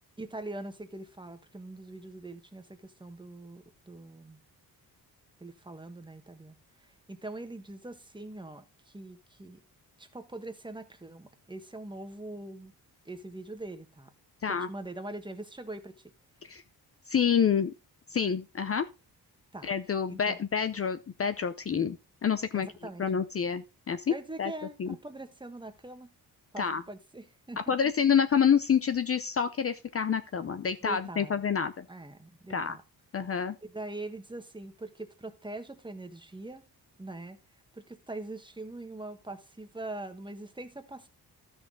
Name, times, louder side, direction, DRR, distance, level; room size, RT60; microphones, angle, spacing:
voice 1, 0.2-4.4 5.4-9.6 10.0-12.7 13.0-14.1 14.5-15.9 19.5-19.7 20.1-20.4 22.5-23.0 24.1-26.1 26.5-27.7 30.8-31.4 31.9-32.8 33.6-36.6 37.0-37.4 37.7-41.1, right 2 dB, 10° right, 7 dB, 1.4 m, -42 dB
voice 2, 17.1-17.7 18.1-18.9 19.6-22.7 23.0-24.1 24.4-24.5 24.8-24.9 26.6-26.8 27.6-31.8 32.5-32.8 33.1-33.6, left 7 dB, 35° left, 12 dB, 0.6 m, -28 dB
13.0 x 6.3 x 3.8 m, 0.28 s
cardioid pair, 105°, 39 cm